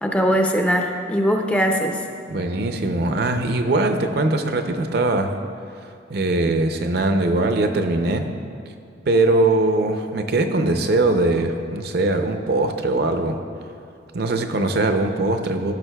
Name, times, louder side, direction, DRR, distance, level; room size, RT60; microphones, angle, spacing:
voice 1, 0.0-2.0, equal, 5° left, 2 dB, 0.4 m, -20 dB
voice 2, 2.3-5.3 6.1-8.3 9.1-13.4 14.1-15.7, right 2 dB, 55° right, 6 dB, 0.5 m, -21 dB
15.5 x 6.0 x 2.2 m, 2.4 s
head